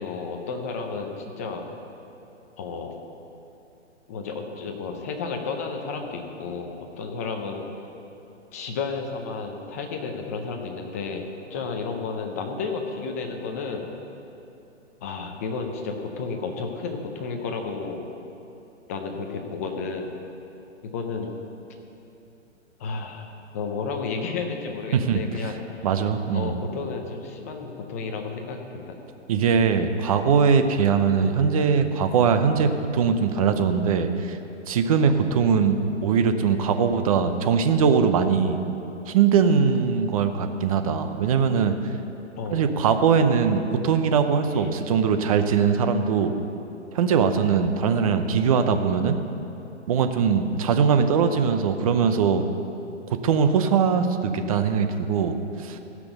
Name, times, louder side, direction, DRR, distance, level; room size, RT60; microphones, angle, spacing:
voice 1, 0.0-1.6 2.6-2.9 4.1-7.6 8.5-11.2 11.5-13.9 15.0-18.1 18.9-20.1 20.8-21.4 22.8-25.9 26.3-29.0 42.4-42.7 44.6-44.7, left 4 dB, 15° left, 3 dB, 0.5 m, -32 dB
voice 2, 24.9-25.5 25.8-26.5 29.3-34.4 34.7-38.6 39.1-41.7 42.5-46.3 46.9-49.2 49.9-52.4 53.2-55.8, right 6 dB, 30° right, 8 dB, 0.7 m, -21 dB
15.5 x 6.1 x 7.9 m, 2.8 s
hypercardioid pair, 150°, 37 cm